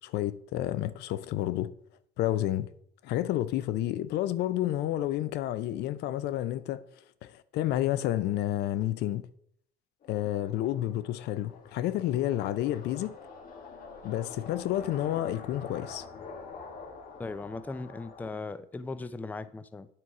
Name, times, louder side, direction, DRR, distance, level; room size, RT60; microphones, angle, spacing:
voice 1, 0.0-1.7 2.2-2.7 3.0-6.8 7.2-9.2 10.1-13.1 14.0-16.0, left 13 dB, 80° left, 0.5 m, -30 dB
sound 1, 10.0-18.3, left 4 dB, 55° left, 1.3 m, -46 dB
voice 2, 17.2-19.9, left 3 dB, 10° left, 0.4 m, -38 dB
8.6 x 4.5 x 4.8 m
cardioid pair, 110°, 17 cm